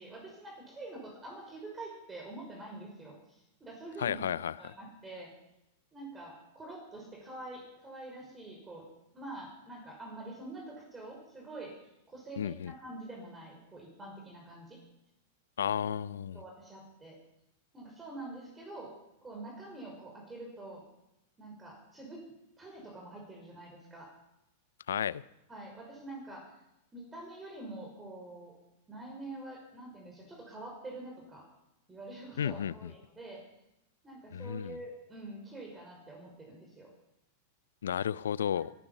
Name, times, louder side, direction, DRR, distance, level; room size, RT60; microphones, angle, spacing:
voice 1, 0.0-4.2 4.6-5.3 5.9-8.9 9.1-11.7 12.1-14.8 16.3-17.2 17.7-18.9 19.2-20.8 21.4-22.2 22.6-24.1 25.5-26.5 26.9-28.5 28.9-31.4 31.9-33.4 34.0-36.9 38.5-38.7, right 2 dB, 15° right, 0 dB, 5.6 m, -46 dB
voice 2, 4.0-4.7 12.4-12.7 15.6-16.4 24.9-25.2 32.4-32.9 34.3-34.8 37.8-38.7, left 8 dB, 75° left, 20 dB, 0.5 m, -33 dB
23.0 x 10.5 x 5.7 m, 0.87 s
hypercardioid pair, 95°, 0 cm